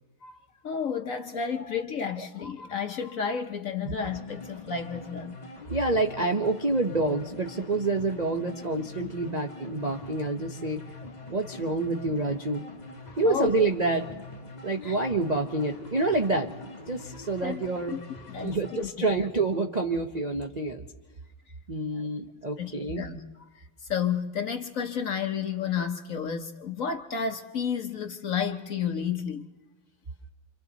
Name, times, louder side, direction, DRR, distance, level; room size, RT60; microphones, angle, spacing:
voice 1, 0.6-5.4 13.2-13.5 14.8-15.0 17.4-17.6 17.9-18.0 18.3-18.9 19.2-19.3 22.6-23.6 23.9-29.5, left 7 dB, 55° left, 1.0 m, -31 dB
sound 1, 4.0-18.9, left 2 dB, 25° left, 1.1 m, -43 dB
voice 2, 5.7-10.8 11.3-12.6 13.2-14.1 14.6-18.0 18.4-20.8 21.7-23.0, right 2 dB, 55° right, 0.4 m, -27 dB
28.5 x 26.0 x 4.0 m
omnidirectional pair, 2.2 m